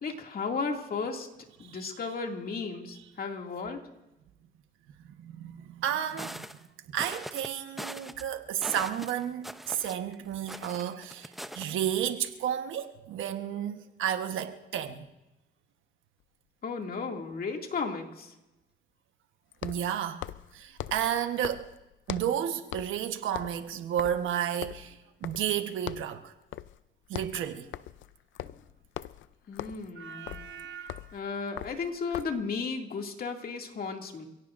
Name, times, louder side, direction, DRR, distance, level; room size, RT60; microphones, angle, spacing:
voice 1, 0.0-1.3 1.6-3.8 16.6-18.3 29.5-30.4 31.1-34.2, left 4 dB, 50° left, 2.4 m, -34 dB
voice 2, 5.2-6.5 6.9-15.0 19.6-20.2 20.5-21.7 22.1-26.3 27.1-27.7 30.0-31.2, right 10 dB, 80° right, 1.2 m, -32 dB
sound 1, 5.9-6.6 7.0-7.5 7.8-8.2 8.6-10.1 10.5-11.7, equal, ahead, 0.7 m, -41 dB
sound 2, 16.2-16.3 19.5-22.4 22.7-23.0 23.3-25.6 25.9-26.2 26.5-26.8 27.1-32.5, left 13 dB, 75° left, 0.6 m, -41 dB
28.0 x 17.0 x 2.6 m
cardioid pair, 90°, 20 cm